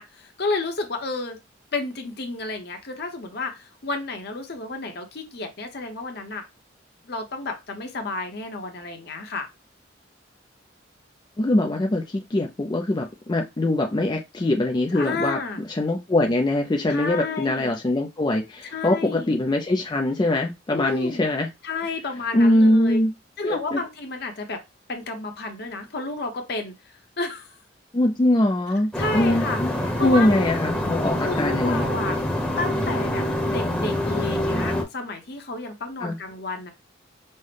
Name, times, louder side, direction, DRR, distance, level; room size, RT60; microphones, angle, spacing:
voice 1, 0.0-1.4 1.7-6.4 7.0-9.5 14.9-15.6 16.9-17.8 18.7-19.4 20.7-21.3 21.6-23.0 23.4-24.6 24.9-27.6 29.0-29.6 30.0-30.5 31.2-32.2 32.6-36.7, left 3 dB, 60° left, 0.9 m, -31 dB
voice 2, 11.4-15.4 15.7-21.5 22.3-23.1 23.4-23.8 27.9-29.8 30.0-31.9 36.0-36.2, left 1 dB, 25° left, 0.4 m, -22 dB
sound 1, 28.9-34.8, left 1 dB, 5° left, 0.9 m, -26 dB
5.4 x 2.1 x 3.3 m
head